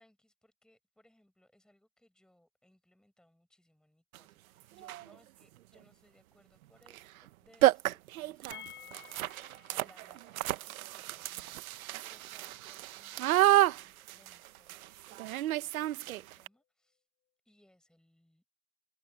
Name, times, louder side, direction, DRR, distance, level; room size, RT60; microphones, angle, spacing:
voice 1, 0.0-7.0 7.4-17.0 17.4-18.4, left 1 dB, ahead, 6.0 m, -67 dB
sound 1, 4.1-4.2 4.8-5.1 6.9-7.0 7.3-7.4 7.6-16.5, right 15 dB, 75° right, 1.3 m, -30 dB
sound 2, 8.5-14.3 14.5-14.6 14.9-15.0, left 13 dB, 25° left, 6.8 m, -55 dB
open air
supercardioid pair, 135°, 43 cm